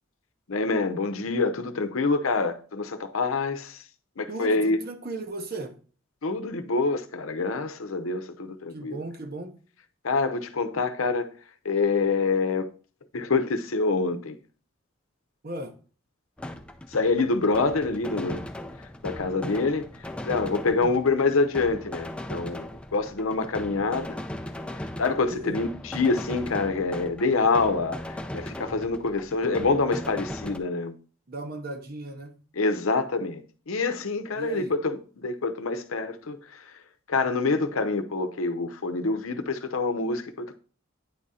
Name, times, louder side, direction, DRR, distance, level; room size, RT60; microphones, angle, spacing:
voice 1, 0.5-3.8 4.2-4.8 6.2-9.0 10.0-11.3 11.6-12.7 13.1-14.4 16.9-18.4 19.0-22.7 22.9-24.2 24.8-30.9 32.5-36.8 37.1-40.6, left 3 dB, 85° left, 0.8 m, -26 dB
voice 2, 4.3-5.7 8.7-9.6 15.4-15.7 20.7-20.9 25.3-25.6 31.3-32.3 34.3-34.7, right 2 dB, 45° right, 0.8 m, -36 dB
sound 1, 16.4-30.6, left 1 dB, 5° left, 0.5 m, -38 dB
9.3 x 3.8 x 4.1 m
head